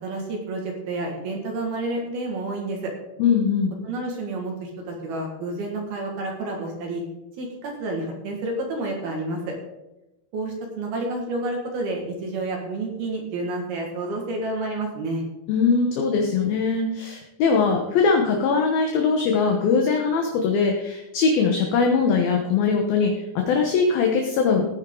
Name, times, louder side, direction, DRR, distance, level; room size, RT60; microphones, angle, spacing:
voice 1, 0.0-2.9 3.8-7.0 7.4-9.6 10.3-15.2, right 2 dB, 60° right, 1 dB, 3.6 m, -29 dB
voice 2, 3.2-3.7 15.5-24.7, left 5 dB, 70° left, 2 dB, 2.6 m, -21 dB
15.5 x 9.7 x 3.8 m, 0.95 s
omnidirectional pair, 5.2 m